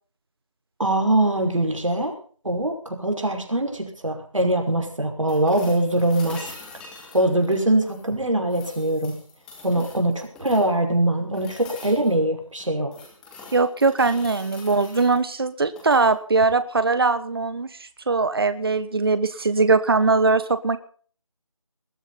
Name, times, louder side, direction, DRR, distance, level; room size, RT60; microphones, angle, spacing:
voice 1, 0.8-2.1 2.4-6.5 7.1-9.2 9.6-12.9, right 1 dB, 70° right, 4 dB, 5.6 m, -22 dB
sound 1, 5.3-8.1 8.5-10.8 11.3-12.1 12.6-15.2 15.7-16.1 18.1-18.2, left 3 dB, 5° left, 2.2 m, -44 dB
voice 2, 13.5-20.8, right 3 dB, 45° right, 13 dB, 1.3 m, -21 dB
20.5 x 14.0 x 4.2 m, 0.44 s
figure-of-eight pair, 165°, 17 cm